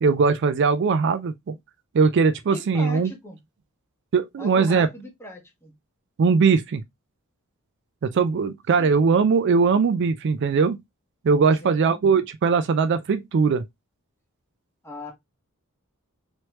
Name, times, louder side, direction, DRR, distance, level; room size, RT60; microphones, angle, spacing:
voice 1, 0.0-1.5 1.9-3.1 4.1-4.9 6.2-6.8 8.0-10.8 11.2-13.6, right 5 dB, 55° right, 0.4 m, -20 dB
voice 2, 2.5-3.4 4.4-5.7 8.8-9.0 11.6-12.0 14.8-15.1, equal, 10° left, 1.2 m, -38 dB
3.1 x 3.1 x 2.9 m
head